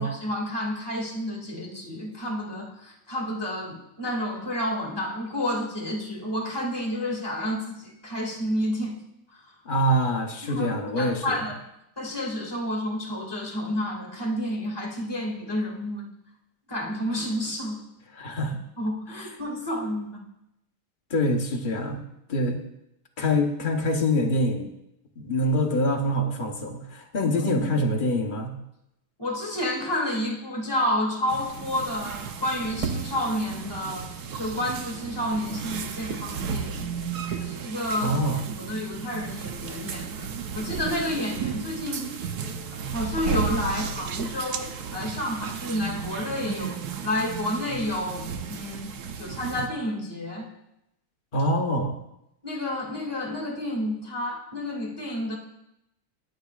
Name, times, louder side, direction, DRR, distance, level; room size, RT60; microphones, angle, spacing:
voice 1, 0.0-9.0 9.3-9.4 10.4-11.6 12.0-16.1 16.7-17.8 18.8-20.2 27.2-27.5 29.2-34.1 34.3-36.9 37.4-38.2 38.6-42.0 42.7-48.9 49.2-50.5 52.4-55.4, left 1 dB, 10° left, -2 dB, 1.9 m, -30 dB
voice 2, 9.7-11.4 18.2-18.6 19.2-19.3 21.1-22.0 22.3-22.6 23.2-24.7 25.2-28.5 38.0-38.4 51.3-52.0, equal, 40° left, 2 dB, 0.7 m, -25 dB
sound 1, 31.3-49.7, right 6 dB, 60° right, 1.0 m, -34 dB
23.0 x 8.0 x 2.4 m, 0.83 s
omnidirectional pair, 2.4 m